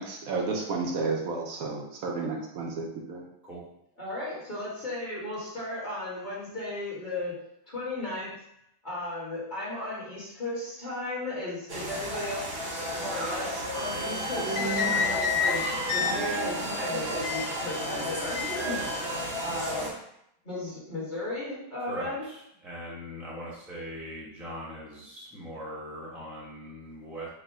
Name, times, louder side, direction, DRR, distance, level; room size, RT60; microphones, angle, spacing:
voice 1, 0.0-3.3, right 3 dB, 75° right, 0 dB, 1.1 m, -32 dB
voice 2, 4.0-8.3 8.8-12.6 13.0-18.8 19.4-19.9 20.4-22.3, left 2 dB, 35° left, -7 dB, 1.3 m, -35 dB
sound 1, 11.7-19.9, equal, 50° right, 0.8 m, -33 dB
sound 2, 13.7-19.6, left 5 dB, 70° left, 1.2 m, -32 dB
voice 3, 21.8-27.3, right 1 dB, ahead, -5 dB, 0.7 m, -40 dB
4.8 x 2.1 x 3.5 m, 0.76 s
omnidirectional pair, 1.6 m